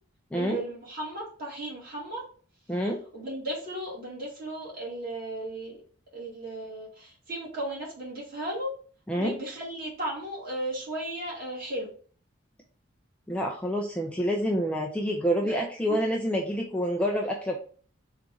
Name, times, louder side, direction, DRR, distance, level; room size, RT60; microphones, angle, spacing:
voice 1, 0.3-2.2 3.1-5.7 6.1-8.7 9.2-11.9 15.4-15.5, right 1 dB, 45° right, -5 dB, 1.9 m, -35 dB
voice 2, 13.3-17.6, equal, 5° left, 0 dB, 0.4 m, -27 dB
3.8 x 2.5 x 4.5 m, 0.43 s
head